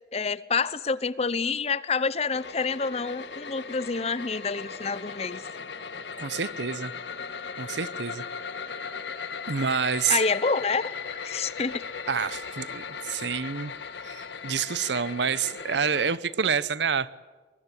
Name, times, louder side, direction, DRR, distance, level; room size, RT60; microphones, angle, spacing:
voice 1, 0.1-5.4 10.1-11.8, left 4 dB, 35° left, 18 dB, 0.7 m, -28 dB
sound 1, 2.3-16.2, left 5 dB, 80° left, 1.5 m, -37 dB
voice 2, 6.2-6.9 7.6-8.2 9.5-10.2 12.1-13.7 14.0-17.1, right 6 dB, 75° right, 18 dB, 0.8 m, -28 dB
23.5 x 22.0 x 8.3 m, 1.4 s
head